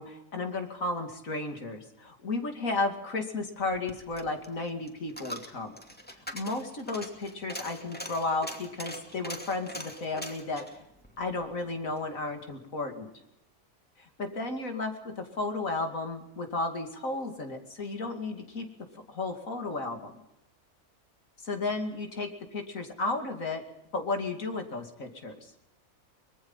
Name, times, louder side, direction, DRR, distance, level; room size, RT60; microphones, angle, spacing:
voice 1, 0.0-5.7 6.3-10.7 11.2-13.1 14.0-18.7 19.1-20.2 21.4-23.6 23.9-25.5, left 3 dB, 75° left, 5 dB, 2.9 m, -33 dB
Coin (dropping), 3.6-12.1 12.4-12.5, equal, 5° left, 2.5 m, -43 dB
24.0 x 21.5 x 5.6 m, 0.82 s
omnidirectional pair, 1.4 m